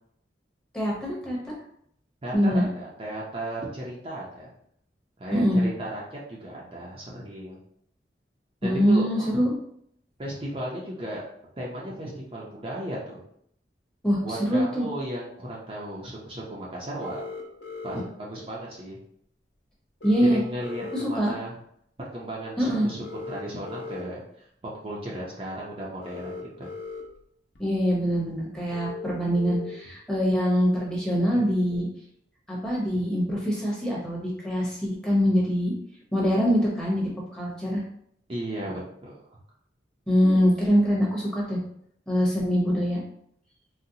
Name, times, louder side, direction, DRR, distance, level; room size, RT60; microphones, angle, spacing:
voice 1, 0.7-1.5 2.3-2.6 5.3-5.6 8.6-9.5 14.0-14.9 20.0-20.4 20.9-21.3 22.6-22.9 27.6-31.9 32.5-35.7 36.1-37.8 40.1-41.6 42.1-43.0, equal, 5° left, -4 dB, 0.8 m, -24 dB
voice 2, 2.2-4.5 5.2-7.6 8.6-9.4 10.2-11.2 11.6-13.2 14.1-17.2 17.8-19.0 20.2-21.6 22.0-24.2 24.8-26.7 31.4-31.5 38.3-39.2 40.2-40.5, right 1 dB, 35° right, -4 dB, 0.5 m, -35 dB
sound 1, 17.0-18.0 20.0-21.0 23.0-24.0 26.0-27.0 27.6-27.7 28.7-29.7 31.7-31.8, left 4 dB, 90° left, 0.7 m, -38 dB
3.9 x 2.0 x 2.7 m, 0.69 s
head